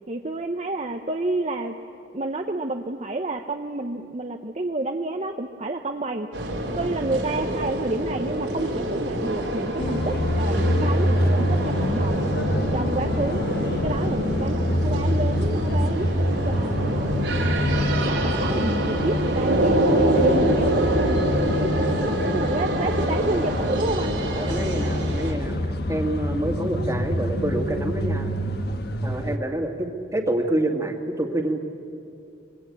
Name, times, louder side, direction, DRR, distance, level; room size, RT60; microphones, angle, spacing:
voice 1, 0.1-1.7 2.1-6.3 6.8-12.3 12.7-13.4 13.8-24.1, right 2 dB, 35° right, 5 dB, 0.9 m, -29 dB
sound 1, 6.3-25.3, right 1 dB, 80° right, 4.3 m, -26 dB
sound 2, 9.8-29.4, left 1 dB, 60° left, 1.3 m, -26 dB
voice 2, 24.4-25.6 25.9-28.3 29.0-31.6, right 1 dB, 15° right, 4 dB, 2.1 m, -27 dB
25.0 x 22.5 x 8.7 m, 2.6 s
head